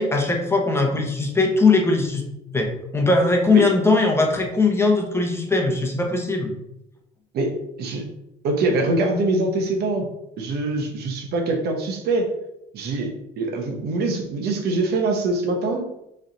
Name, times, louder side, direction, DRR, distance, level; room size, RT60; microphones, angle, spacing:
voice 1, 0.0-2.2 2.5-2.7 2.9-6.5, left 3 dB, 15° left, 2 dB, 0.8 m, -20 dB
voice 2, 8.4-10.1 10.4-12.3 12.7-15.9, right 2 dB, 70° right, 3 dB, 0.9 m, -23 dB
4.0 x 3.3 x 3.8 m, 0.85 s
cardioid pair, 110°, 17 cm